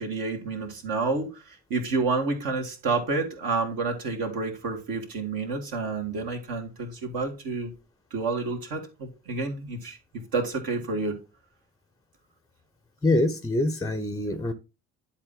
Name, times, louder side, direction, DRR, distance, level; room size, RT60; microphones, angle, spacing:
voice 1, 0.0-7.7 8.1-11.2, right 3 dB, 55° right, 2.2 m, -29 dB
voice 2, 13.0-14.5, left 2 dB, 10° left, 0.7 m, -25 dB
10.5 x 4.3 x 3.9 m
figure-of-eight pair, 55°, 43 cm